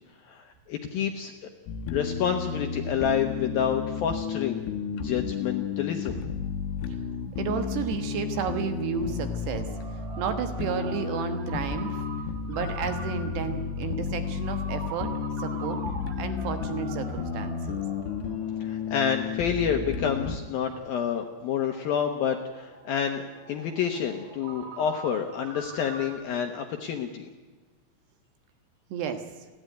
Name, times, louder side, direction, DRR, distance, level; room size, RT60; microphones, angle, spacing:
voice 1, 0.2-1.5 1.9-4.6 5.0-6.2 18.6-27.3, left 8 dB, 70° left, 5 dB, 2.3 m, -29 dB
sound 1, 1.7-20.4, left 6 dB, 85° left, 3.8 m, -32 dB
Ringtone, 6.4-26.2, right 4 dB, 40° right, 3.5 m, -45 dB
voice 2, 7.3-9.7 10.2-12.0 12.5-15.1 15.4-15.8 16.2-17.8 28.9-29.2, right 7 dB, 70° right, 8 dB, 3.2 m, -32 dB
30.0 x 11.5 x 9.2 m, 1.3 s
omnidirectional pair, 5.6 m